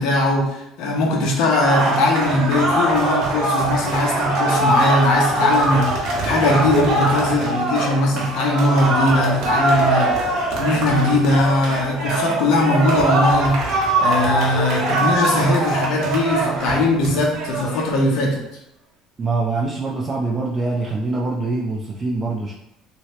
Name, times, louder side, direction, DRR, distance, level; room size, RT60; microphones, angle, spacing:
voice 1, 0.0-10.1 10.6-13.6 14.0-18.4, left 2 dB, 75° left, 0 dB, 0.9 m, -20 dB
sound 1, 1.6-17.9, right 2 dB, 65° right, 1.0 m, -22 dB
voice 2, 19.2-22.5, right 3 dB, 25° right, -3 dB, 0.4 m, -24 dB
2.9 x 2.8 x 3.1 m, 0.86 s
cardioid pair, 130°, 0 cm